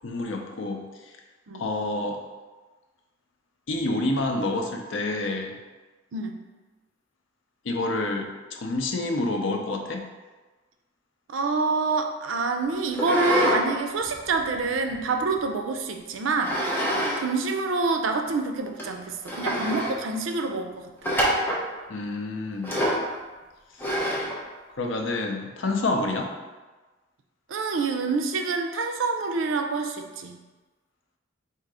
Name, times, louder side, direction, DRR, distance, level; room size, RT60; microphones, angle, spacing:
voice 1, 0.0-0.8 1.5-2.2 3.7-5.5 7.6-10.0 21.9-22.8 24.8-26.3, left 2 dB, 75° left, 3 dB, 0.6 m, -28 dB
voice 2, 11.3-16.6 17.2-21.2 27.5-30.4, right 3 dB, 85° right, 5 dB, 0.5 m, -27 dB
sound 1, 12.9-13.6 14.0-15.4 16.4-17.2 17.5-17.6 18.3-18.4 18.8-18.9 19.2-19.9 21.0-21.6 22.6-23.1 23.8-24.4, equal, 10° left, 0.8 m, -26 dB
3.8 x 2.8 x 4.7 m, 1.2 s
head